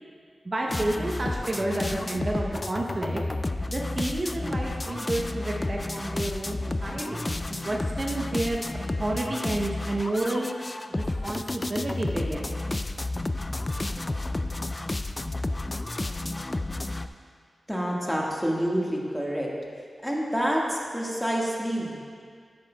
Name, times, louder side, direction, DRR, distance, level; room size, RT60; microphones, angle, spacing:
voice 1, 0.4-3.2 3.7-8.6 9.0-10.5 10.9-12.5, right 1 dB, 45° right, -1 dB, 0.7 m, -30 dB
sound 1, 0.7-17.1, left 2 dB, 30° left, 0.3 m, -31 dB
voice 2, 17.7-19.5 20.0-22.0, equal, 5° left, -3 dB, 1.5 m, -27 dB
10.5 x 8.1 x 2.2 m, 2.1 s
cardioid pair, 50°, 0 cm